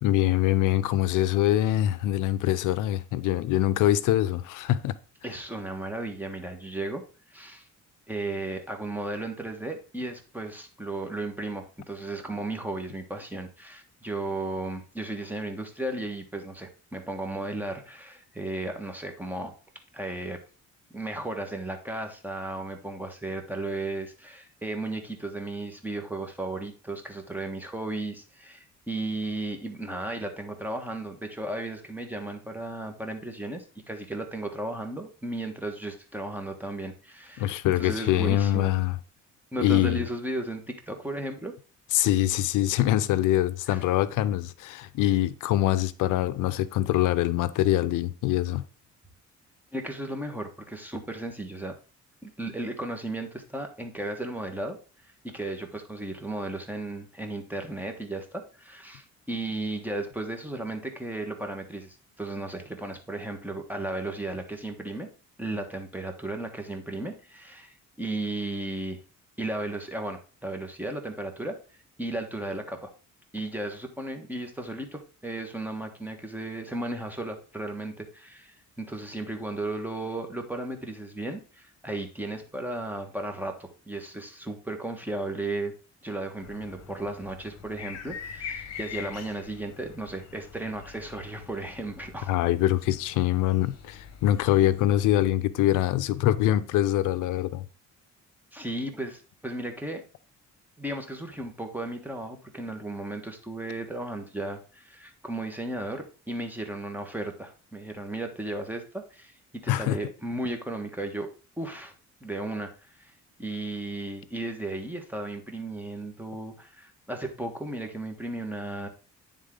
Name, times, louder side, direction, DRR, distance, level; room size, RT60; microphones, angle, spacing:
voice 1, 0.0-4.9 37.4-39.0 39.6-40.0 41.9-48.6 92.3-97.7 109.7-110.0, left 13 dB, 85° left, 0.5 m, -24 dB
voice 2, 5.2-7.0 7.3-7.7 8.1-19.5 19.9-20.4 20.9-38.7 39.5-41.5 43.7-43.8 49.7-51.7 52.2-54.8 55.2-65.1 65.4-69.0 69.4-71.6 72.0-72.9 73.3-85.7 86.0-92.3 98.5-100.0 100.8-111.3 111.6-111.9 112.2-112.7 113.0-113.1 113.4-118.9, right 2 dB, 5° right, 1.3 m, -35 dB
sound 1, 86.4-95.3, left 7 dB, 60° left, 1.0 m, -44 dB
9.5 x 3.7 x 3.7 m
cardioid pair, 90°, 30 cm